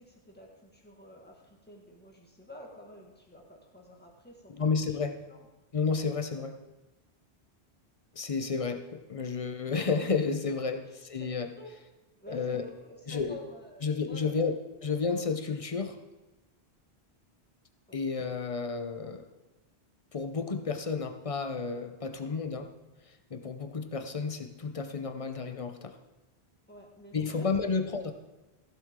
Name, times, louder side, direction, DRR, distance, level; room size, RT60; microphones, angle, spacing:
voice 1, 0.0-4.9 5.3-5.5 10.7-11.3 11.5-11.8 12.2-14.5 17.9-18.0 22.1-22.2 26.7-27.8, left 1 dB, 10° left, -2 dB, 1.8 m, -49 dB
voice 2, 4.5-5.2 5.7-6.5 8.1-10.8 11.1-11.5 12.3-12.6 13.1-13.3 13.8-14.5 14.8-16.0 17.9-19.2 20.1-22.7 23.1-25.9 27.1-28.1, left 5 dB, 35° left, 6 dB, 0.8 m, -31 dB
15.0 x 7.6 x 3.7 m, 1.1 s
omnidirectional pair, 1.1 m